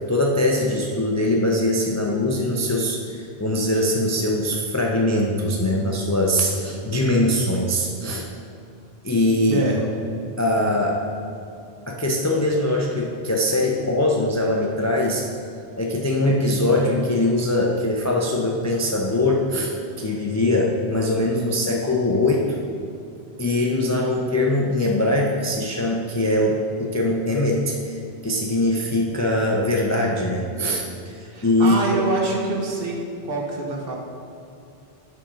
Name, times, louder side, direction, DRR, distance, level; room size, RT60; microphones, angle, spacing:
voice 1, 0.1-8.3 9.0-9.6 10.4-11.0 11.9-15.3 15.8-22.6 23.4-28.0 28.2-32.0, left 1 dB, 30° left, -1 dB, 0.3 m, -22 dB
voice 2, 9.5-9.8 31.3-33.0 33.2-34.0, right 2 dB, 65° right, 0 dB, 1.1 m, -25 dB
7.5 x 3.6 x 5.0 m, 2.6 s
omnidirectional pair, 1.1 m